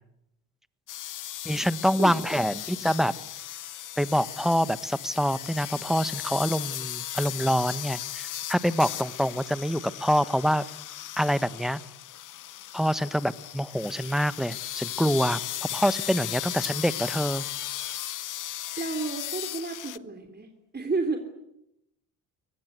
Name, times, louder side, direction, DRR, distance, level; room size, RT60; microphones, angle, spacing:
sound 1, 0.9-20.0, left 12 dB, 45° left, 0.9 m, -36 dB
voice 1, 1.4-3.1 4.0-10.6 11.2-11.8 12.7-17.5, equal, ahead, 15 dB, 1.3 m, -26 dB
voice 2, 2.0-2.6 18.8-21.2, right 3 dB, 20° right, 4 dB, 3.4 m, -32 dB
23.0 x 20.0 x 9.8 m, 0.85 s
hypercardioid pair, 60°, 43 cm